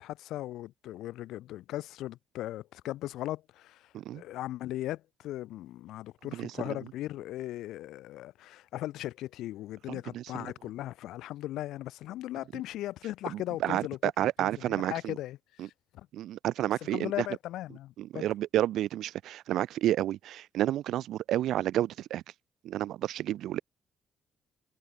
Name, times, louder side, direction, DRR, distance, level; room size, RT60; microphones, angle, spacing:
voice 1, 0.0-16.1 16.8-18.3, left 14 dB, 85° left, 2.4 m, -38 dB
voice 2, 6.3-6.8 9.9-10.5 13.3-15.2 15.6-15.7 16.1-17.3 18.0-22.2 22.6-23.6, right 13 dB, 80° right, 0.7 m, -30 dB
cardioid pair, 90°, 0 cm